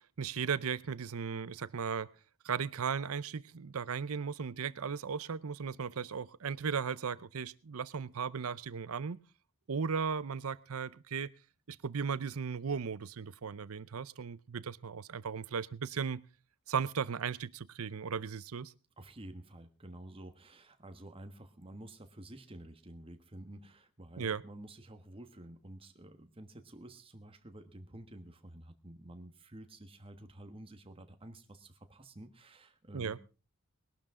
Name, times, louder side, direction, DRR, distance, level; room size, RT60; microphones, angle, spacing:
voice 1, 0.2-2.1 2.4-9.2 9.7-11.3 11.7-16.2 16.7-18.7 24.2-24.4 32.9-33.2, right 6 dB, 75° right, 0.6 m, -36 dB
voice 2, 19.0-33.2, right 1 dB, 25° right, 1.3 m, -50 dB
20.5 x 12.0 x 3.7 m
head